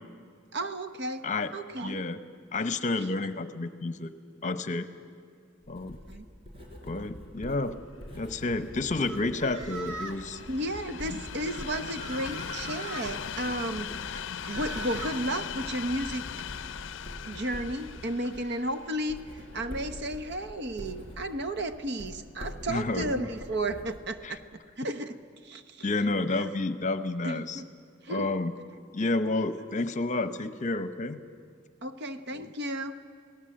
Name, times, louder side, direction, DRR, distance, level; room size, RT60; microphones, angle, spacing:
voice 1, 0.5-1.2 1.5-2.0 6.1-6.3 10.5-13.9 14.5-16.2 17.2-24.4 24.8-25.9 26.3-26.5 27.2-27.7 28.0-28.3 31.8-32.9, right 1 dB, 60° right, 9 dB, 1.0 m, -33 dB
voice 2, 1.8-2.2 2.5-4.1 4.4-4.9 5.7-6.0 6.8-7.8 8.1-10.4 11.1-11.2 22.7-23.2 24.2-24.3 25.8-27.6 28.1-28.5 28.9-31.2 32.3-32.5, left 2 dB, 40° left, 11 dB, 0.9 m, -30 dB
Writing, 5.6-24.4, equal, 30° right, 4.6 m, -45 dB
Train, 8.0-21.2 21.9-22.0, left 8 dB, 65° left, 0.5 m, -41 dB
sound 1, 9.0-10.3 11.5-13.1 14.0-15.2, right 2 dB, 75° right, 1.8 m, -41 dB
27.5 x 18.0 x 7.7 m, 2.1 s
head